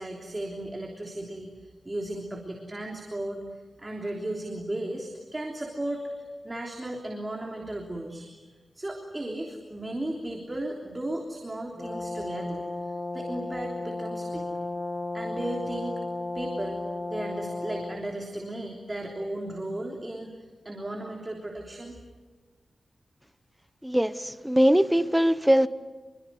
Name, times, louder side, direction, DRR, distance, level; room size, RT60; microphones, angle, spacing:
voice 1, 0.0-6.1 6.4-8.4 8.7-12.7 13.1-14.5 15.1-16.0 16.3-16.8 17.1-20.3 20.6-22.0, right 1 dB, 20° right, 1 dB, 3.3 m, -35 dB
Brass instrument, 11.8-18.0, left 2 dB, 30° left, 2.7 m, -34 dB
voice 2, 23.8-25.7, equal, 5° right, 12 dB, 1.0 m, -21 dB
27.5 x 23.0 x 9.5 m, 1.2 s
wide cardioid pair, 125°, 0 cm